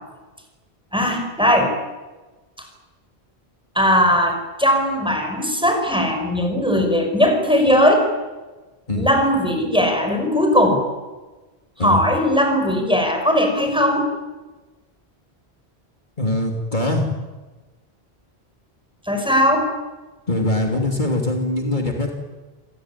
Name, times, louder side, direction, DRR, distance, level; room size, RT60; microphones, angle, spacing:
voice 1, 0.9-1.7 3.8-8.1 8.9-10.8 11.8-14.1 19.1-19.7, equal, 5° right, 3 dB, 5.2 m, -18 dB
voice 2, 16.2-17.0 20.3-22.1, left 1 dB, 45° left, 2 dB, 3.3 m, -22 dB
28.5 x 17.0 x 10.0 m, 1.2 s
omnidirectional pair, 1.1 m